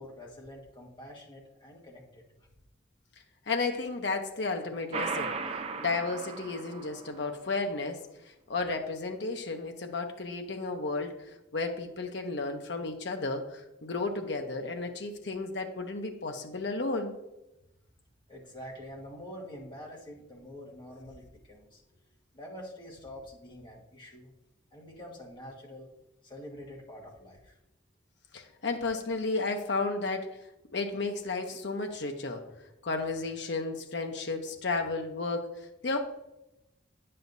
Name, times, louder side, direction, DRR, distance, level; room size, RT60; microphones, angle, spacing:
voice 1, 0.0-2.2 18.3-21.8 22.3-24.3 24.7-25.9 26.2-27.6, equal, 25° left, -3 dB, 1.5 m, -46 dB
voice 2, 3.5-5.4 5.8-8.0 8.5-11.2 11.5-17.1 28.3-30.3 30.7-32.4 32.8-36.0, left 3 dB, 65° left, 4 dB, 0.8 m, -33 dB
sound 1, 4.9-7.3, right 4 dB, 30° right, 0.5 m, -36 dB
9.3 x 7.7 x 2.6 m, 0.91 s
head